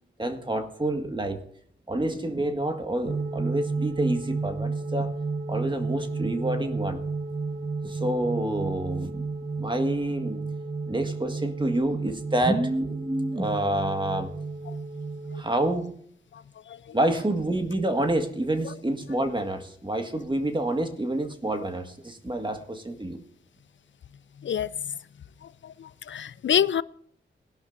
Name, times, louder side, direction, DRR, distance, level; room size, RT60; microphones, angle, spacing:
voice 1, 0.2-1.4 1.9-5.2 5.5-7.0 7.8-9.3 9.6-10.4 10.9-14.3 15.3-16.0 16.9-23.2, right 1 dB, 25° right, 6 dB, 1.8 m, -28 dB
sound 1, 3.0-15.4, right 4 dB, 45° right, 1.4 m, -32 dB
voice 2, 25.8-26.8, left 9 dB, 70° left, 18 dB, 0.5 m, -25 dB
20.5 x 12.0 x 2.6 m, 0.62 s
cardioid pair, 65°, 20 cm